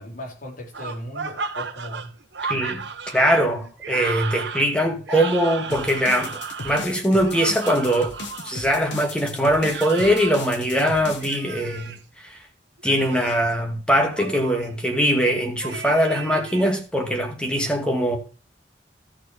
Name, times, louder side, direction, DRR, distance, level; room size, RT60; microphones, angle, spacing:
voice 1, 0.0-2.1, left 1 dB, 50° left, 4.1 m, -37 dB
sound 1, 0.7-8.6 9.6-10.5 11.2-12.0 12.8-13.5 14.2-14.7 15.6-16.7, right 5 dB, 70° right, 1.2 m, -34 dB
voice 2, 2.5-8.1 8.4-12.4 12.8-18.2, equal, 5° left, 2.4 m, -22 dB
sound 2, 5.7-11.4, left 3 dB, 80° left, 2.1 m, -36 dB
14.0 x 6.2 x 5.1 m
head